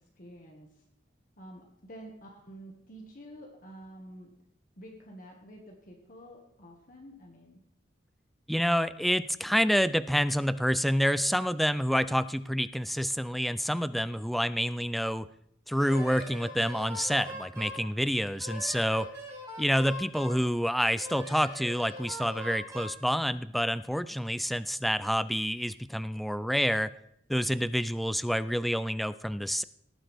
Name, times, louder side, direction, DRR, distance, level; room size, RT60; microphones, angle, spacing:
voice 1, 0.2-0.7 1.4-4.3 4.8-7.6, right 1 dB, 50° left, 0 dB, 1.7 m, -49 dB
voice 2, 8.5-15.3 15.7-19.1 19.6-26.9 27.3-29.6, equal, ahead, 15 dB, 0.3 m, -28 dB
Wind instrument woodwind instrument, 15.8-17.8 18.4-20.4 21.0-23.0, equal, 15° right, 5.0 m, -41 dB
17.5 x 9.0 x 3.5 m, 0.73 s
head